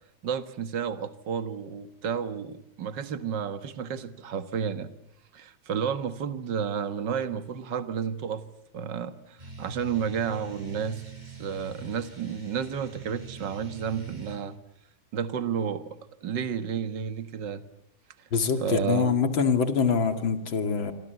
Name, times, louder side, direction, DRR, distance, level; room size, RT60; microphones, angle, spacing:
voice 1, 0.2-4.9 5.3-8.4 8.7-11.0 11.4-14.6 15.1-16.0 16.2-17.7 18.6-19.2, right 7 dB, 65° right, 2.1 m, -31 dB
sound 1, 9.4-14.4, right 5 dB, 20° right, 6.9 m, -44 dB
voice 2, 18.3-20.9, left 5 dB, 80° left, 2.9 m, -24 dB
27.0 x 25.0 x 8.0 m
omnidirectional pair, 2.1 m